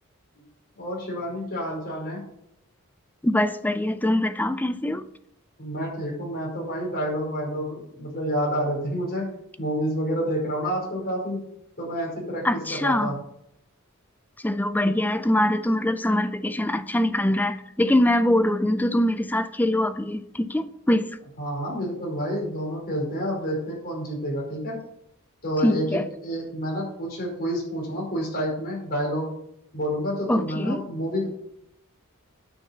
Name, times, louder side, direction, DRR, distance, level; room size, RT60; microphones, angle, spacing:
voice 1, 0.8-2.2 5.6-9.3 9.6-11.4 11.8-13.1 21.4-24.8 25.4-29.3 29.7-31.3, equal, 45° left, 5.1 m, -29 dB
voice 2, 3.2-5.0 12.4-13.2 14.4-21.1 25.6-26.1 30.3-30.8, left 1 dB, 10° left, 0.5 m, -23 dB
9.4 x 6.1 x 6.9 m
head